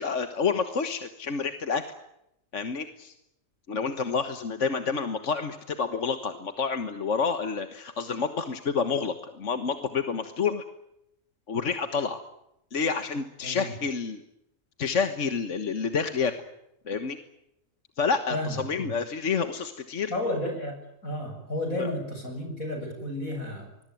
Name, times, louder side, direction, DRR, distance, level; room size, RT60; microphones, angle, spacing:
voice 1, 0.0-1.8 2.5-3.1 3.7-10.6 11.5-12.2 12.7-14.2 14.8-16.3 16.9-17.2 18.0-20.1 21.8-21.9, left 5 dB, 60° left, 8 dB, 1.7 m, -29 dB
voice 2, 18.3-18.9 20.1-23.7, left 1 dB, 85° left, 4 dB, 7.6 m, -32 dB
25.5 x 21.5 x 9.3 m, 0.82 s
omnidirectional pair, 1.4 m